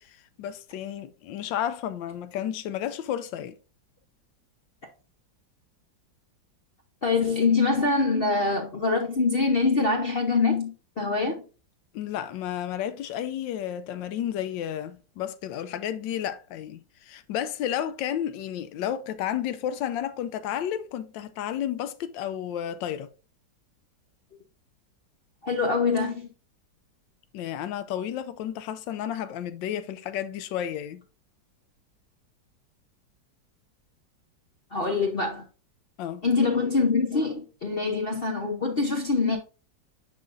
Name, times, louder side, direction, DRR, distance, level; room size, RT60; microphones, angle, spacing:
voice 1, 0.0-3.6 11.9-23.1 27.3-31.0 36.0-36.2, left 10 dB, 90° left, 1.3 m, -32 dB
voice 2, 7.0-11.4 25.4-26.3 34.7-35.5 36.2-39.4, left 4 dB, 40° left, 0.9 m, -24 dB
10.5 x 3.9 x 2.6 m
omnidirectional pair, 2.0 m